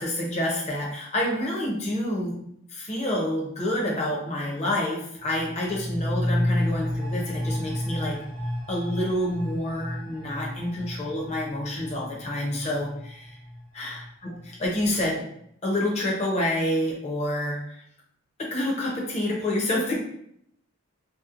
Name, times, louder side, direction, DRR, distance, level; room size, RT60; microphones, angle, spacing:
voice 1, 0.0-2.4 2.7-8.2 8.7-13.4 13.7-15.3 15.6-17.6 18.4-20.0, left 1 dB, 30° left, -3 dB, 0.6 m, -28 dB
sound 1, 5.2-14.6 14.9-15.0, left 1 dB, 40° right, 0.9 m, -32 dB
2.7 x 2.0 x 2.4 m, 0.70 s
head